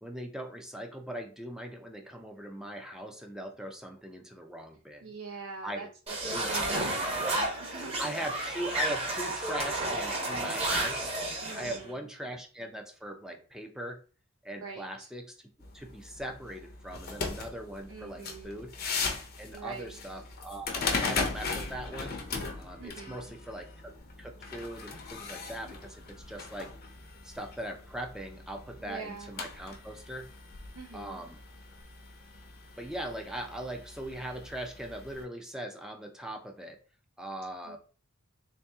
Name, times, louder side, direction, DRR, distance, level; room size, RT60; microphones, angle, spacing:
voice 1, 0.0-5.1 5.6-5.9 6.3-7.2 8.0-11.1 11.5-14.0 14.4-15.4 15.7-18.7 19.4-22.1 22.6-23.9 24.2-26.7 27.2-30.3 30.9-31.4 32.8-36.8 37.2-37.8, right 1 dB, 5° right, 3 dB, 0.5 m, -40 dB
voice 2, 5.0-8.3 11.4-12.0 14.6-15.1 17.9-18.6 19.5-20.0 22.8-23.4 28.9-29.5 30.7-31.3 37.6-37.8, right 4 dB, 70° right, -1 dB, 0.7 m, -45 dB
sound 1, 6.1-11.8, right 2 dB, 30° right, 1.0 m, -31 dB
sound 2, 15.6-35.2, left 4 dB, 45° left, 0.7 m, -39 dB
3.5 x 2.7 x 3.5 m, 0.38 s
head